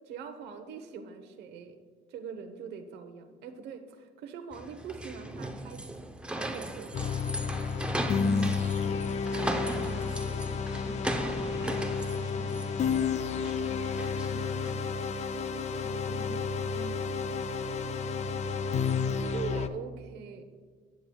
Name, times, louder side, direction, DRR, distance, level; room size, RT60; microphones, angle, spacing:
voice 1, 0.1-1.8 2.1-5.8 6.4-7.5 9.8-10.1 19.2-20.5, right 6 dB, 80° right, 7 dB, 1.0 m, -42 dB
sound 1, 4.5-14.9, right 1 dB, 5° right, 0.7 m, -38 dB
sound 2, 6.9-19.7, left 5 dB, 40° left, 0.5 m, -31 dB
voice 2, 8.1-10.5 10.8-14.7 15.7-17.5, right 2 dB, 25° left, 4 dB, 1.3 m, -47 dB
15.5 x 9.8 x 2.3 m, 1.6 s
cardioid pair, 110°, 17 cm